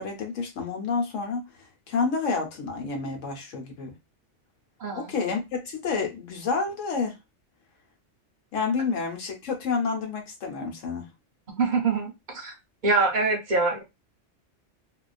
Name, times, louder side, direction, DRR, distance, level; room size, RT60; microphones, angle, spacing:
voice 1, 0.0-1.4 1.9-3.9 5.0-7.2 8.5-11.1, left 4 dB, 85° left, 1.1 m, -29 dB
voice 2, 11.6-12.5 12.8-13.8, right 3 dB, 50° right, 0.6 m, -24 dB
2.3 x 2.3 x 2.3 m
omnidirectional pair, 1.3 m